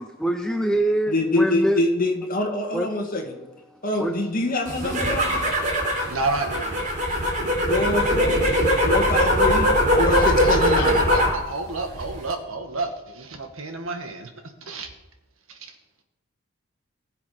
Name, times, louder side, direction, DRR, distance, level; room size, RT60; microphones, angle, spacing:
voice 1, 0.0-1.8 2.7-2.9 4.0-4.1, right 1 dB, 5° left, 5 dB, 0.5 m, -24 dB
voice 2, 1.1-3.5 3.8-5.5 7.7-8.4 8.9-9.7 10.0-11.0, left 2 dB, 40° left, 2 dB, 1.9 m, -25 dB
sound 1, 4.7-11.4 11.8-12.3, equal, 35° right, 3.5 m, -21 dB
voice 3, 6.0-6.9 10.2-14.3 14.6-14.9 15.5-15.7, right 3 dB, 70° right, 5 dB, 1.7 m, -30 dB
20.0 x 7.3 x 5.1 m, 1.0 s
head